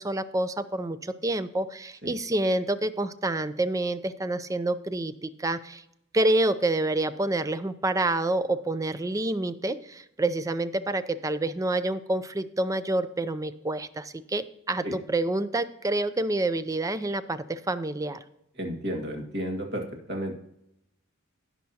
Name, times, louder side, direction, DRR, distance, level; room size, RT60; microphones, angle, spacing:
voice 1, 0.0-5.8 6.1-18.2, right 2 dB, 15° right, 13 dB, 0.4 m, -28 dB
voice 2, 18.6-20.3, equal, 55° right, 2 dB, 1.8 m, -32 dB
17.0 x 5.7 x 2.8 m, 0.81 s
head